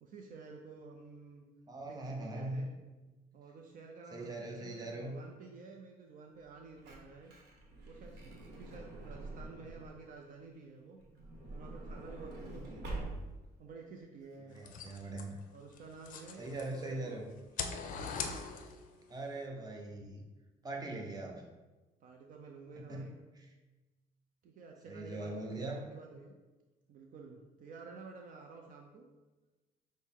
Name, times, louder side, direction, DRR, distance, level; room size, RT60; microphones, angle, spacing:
voice 1, 0.0-1.4 1.9-2.7 3.3-7.3 7.9-11.0 11.5-12.9 13.6-14.6 15.5-17.2 22.0-23.2 24.4-26.4 26.9-29.0, right 4 dB, 55° right, 2 dB, 0.5 m, -51 dB
voice 2, 1.7-2.7 4.1-5.2 12.7-12.8 14.5-15.4 16.4-17.3 19.1-20.3 20.6-21.4 22.8-23.1 24.9-25.8, right 2 dB, 20° right, 0 dB, 0.7 m, -41 dB
Truck / Door, 6.4-10.0 11.0-13.5 14.2-14.3 14.5-14.7, right 2 dB, 80° right, 1.0 m, -45 dB
sound 1, 14.6-16.9 17.3-19.0, left 5 dB, 50° left, 0.5 m, -41 dB
6.1 x 2.1 x 3.6 m, 1.2 s
cardioid pair, 110°, 17 cm